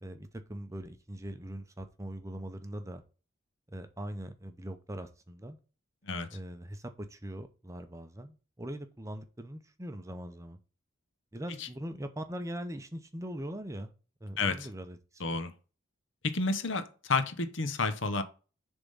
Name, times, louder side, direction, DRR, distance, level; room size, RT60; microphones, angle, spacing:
voice 1, 0.0-3.0 3.7-5.6 6.3-10.6 11.3-13.9 14.2-15.4, right 1 dB, 15° right, 0.6 m, -41 dB
voice 2, 14.4-14.7 15.2-15.5 16.2-18.2, left 3 dB, 65° left, 0.9 m, -30 dB
6.8 x 3.6 x 5.4 m
head